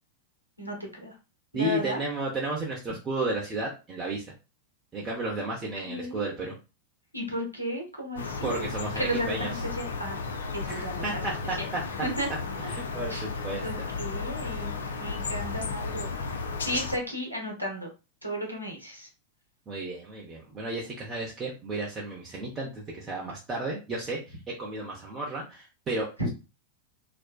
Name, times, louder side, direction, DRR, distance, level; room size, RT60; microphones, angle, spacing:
voice 1, 0.6-1.1 1.5-2.0 5.8-6.4 7.1-8.7 9.0-10.2 10.5-11.2 12.0-12.3 13.1-13.2 13.6-14.7 15.0-17.9 18.2-19.1 26.2-26.3, equal, 90° right, 0 dB, 0.8 m, -34 dB
voice 2, 1.5-4.3 4.9-6.5 8.4-9.5 10.7-11.6 12.6-13.9 19.7-26.3, right 2 dB, 25° right, -3 dB, 0.7 m, -33 dB
sound 1, 8.2-17.0, left 4 dB, 65° left, 0.4 m, -34 dB
2.5 x 2.1 x 2.3 m, 0.30 s
figure-of-eight pair, 90°, 0 cm